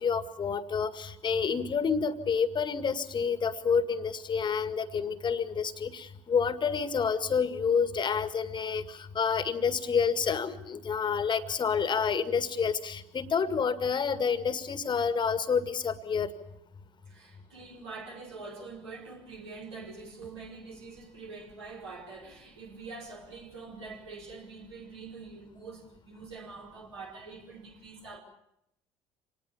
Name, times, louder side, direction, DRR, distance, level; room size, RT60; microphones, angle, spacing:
voice 1, 0.0-16.3, left 6 dB, 30° left, 1.9 m, -29 dB
voice 2, 17.1-28.2, right 4 dB, 75° right, 4.7 m, -45 dB
27.0 x 19.5 x 7.1 m
figure-of-eight pair, 55°, 14 cm